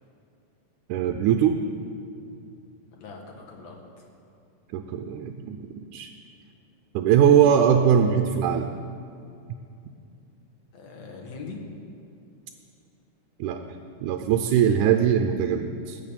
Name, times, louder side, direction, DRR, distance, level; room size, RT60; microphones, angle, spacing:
voice 1, 0.9-1.6 4.7-6.1 6.9-8.7 13.4-13.6 14.0-16.0, right 8 dB, 90° right, 5 dB, 2.2 m, -21 dB
voice 2, 2.9-4.0 7.2-7.4 10.7-11.6, left 4 dB, 60° left, 0 dB, 3.0 m, -42 dB
19.5 x 6.6 x 8.9 m, 2.5 s
omnidirectional pair, 3.4 m